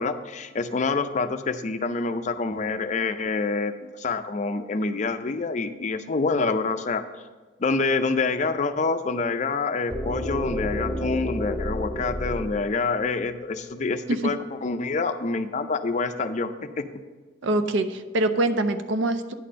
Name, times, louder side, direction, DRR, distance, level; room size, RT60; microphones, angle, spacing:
voice 1, 0.0-7.0 7.6-16.9, left 4 dB, 40° left, 9 dB, 0.4 m, -27 dB
sound 1, 9.9-13.8, equal, 10° right, 1.5 m, -31 dB
voice 2, 17.4-19.3, right 2 dB, 70° right, 9 dB, 0.6 m, -24 dB
9.8 x 4.3 x 6.4 m, 1.4 s
head